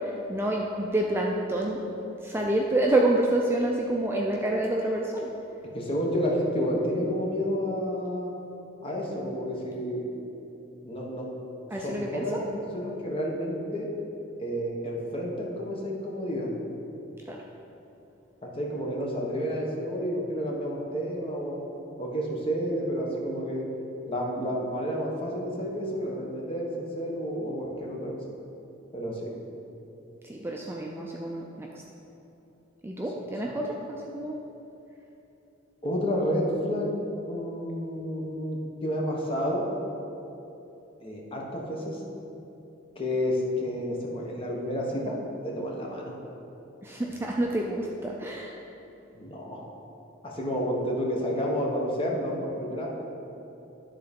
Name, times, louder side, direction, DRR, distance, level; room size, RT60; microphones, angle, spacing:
voice 1, 0.0-1.8 2.2-5.3 11.7-12.4 17.3-17.4 30.2-31.8 32.8-34.4 46.8-48.5, right 1 dB, 10° right, -1 dB, 0.4 m, -28 dB
voice 2, 5.7-8.3 8.8-10.1 10.8-11.3 11.8-12.4 12.7-13.9 14.4-16.5 18.4-21.6 22.0-23.6 24.0-28.2 28.9-29.3 35.8-36.9 37.3-39.7 41.0-42.0 43.0-45.2 45.4-46.1 49.1-49.6 50.2-52.9, equal, 25° left, -2 dB, 1.1 m, -30 dB
11.0 x 3.8 x 5.2 m, 2.9 s
head